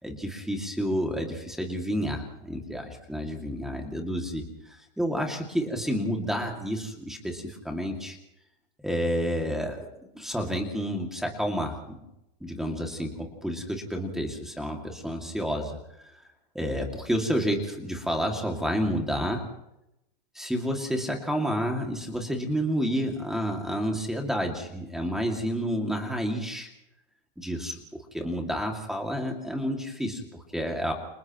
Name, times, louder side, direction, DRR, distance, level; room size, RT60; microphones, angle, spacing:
voice 1, 0.0-4.4 4.7-8.2 8.8-9.9 10.1-11.8 12.4-15.8 16.5-19.5 20.3-26.7 27.4-27.8 28.1-30.2 30.5-30.9, equal, ahead, 2 dB, 2.4 m, -30 dB
30.0 x 29.0 x 3.1 m, 0.86 s
supercardioid pair, 160°, 29 cm